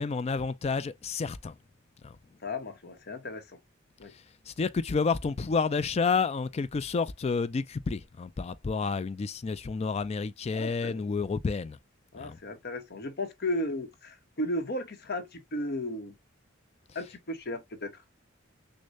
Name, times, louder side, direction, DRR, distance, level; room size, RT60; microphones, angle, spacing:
voice 1, 0.0-1.5 2.0-2.2 4.5-11.8 12.2-12.4, left 4 dB, 30° left, 0.3 m, -30 dB
voice 2, 2.4-3.6 4.0-4.1 10.5-11.0 12.1-16.1 16.9-18.0, left 1 dB, 55° left, 0.9 m, -35 dB
6.3 x 2.1 x 2.5 m
head